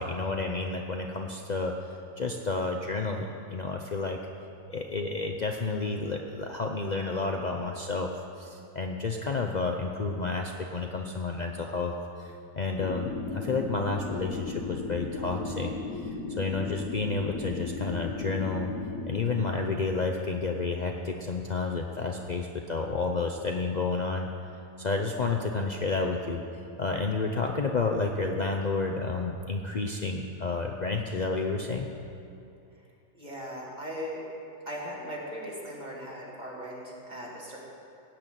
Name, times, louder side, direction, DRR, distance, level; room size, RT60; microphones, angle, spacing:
voice 1, 0.0-1.8 2.2-4.2 4.7-11.9 12.2-15.7 16.0-18.7 19.1-24.3 24.8-26.4 26.8-31.9, left 3 dB, 65° left, 2 dB, 0.4 m, -30 dB
sound 1, 12.8-19.4, left 3 dB, 90° left, 1.7 m, -36 dB
voice 2, 33.1-34.2 34.7-37.6, equal, 25° right, -4 dB, 2.8 m, -38 dB
16.5 x 6.1 x 9.1 m, 2.6 s
omnidirectional pair, 1.8 m